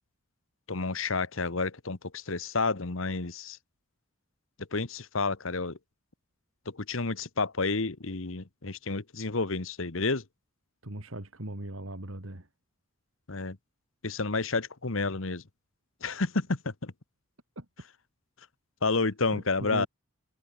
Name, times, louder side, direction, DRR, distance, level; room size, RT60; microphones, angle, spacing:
voice 1, 0.7-3.6 4.7-5.8 6.7-10.2 13.3-13.6 14.0-15.4 16.0-16.9 18.8-19.9, left 3 dB, 70° left, 1.4 m, -30 dB
voice 2, 10.8-12.5 17.6-17.7 19.3-19.9, right 1 dB, 75° right, 3.0 m, -39 dB
head